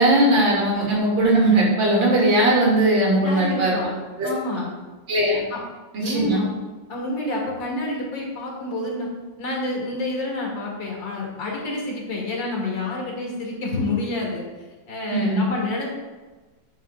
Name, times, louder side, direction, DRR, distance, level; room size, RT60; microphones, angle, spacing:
voice 1, 0.0-3.8 4.2-4.3 5.1-5.4 5.9-6.4 15.1-15.4, right 1 dB, 80° right, -4 dB, 2.9 m, -19 dB
voice 2, 3.2-4.0 4.2-4.7 5.5-5.6 6.0-6.5 6.9-9.1 9.4-14.4 14.9-15.9, left 2 dB, 75° left, -3 dB, 2.8 m, -28 dB
10.0 x 8.8 x 2.4 m, 1.3 s
omnidirectional pair, 2.0 m